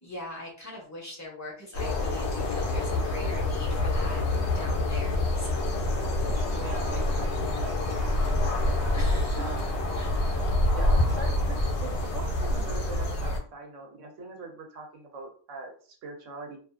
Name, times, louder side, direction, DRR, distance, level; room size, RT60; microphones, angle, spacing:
voice 1, 0.0-4.2 4.5-5.9 8.9-9.6 9.9-10.1, left 2 dB, 20° left, -3 dB, 0.6 m, -41 dB
sound 1, 1.7-13.4, left 1 dB, 65° left, 1.0 m, -27 dB
voice 2, 6.2-8.9 9.4-9.6 10.7-16.6, right 3 dB, 75° right, 2 dB, 1.0 m, -42 dB
2.6 x 2.4 x 2.4 m, 0.43 s
omnidirectional pair, 1.3 m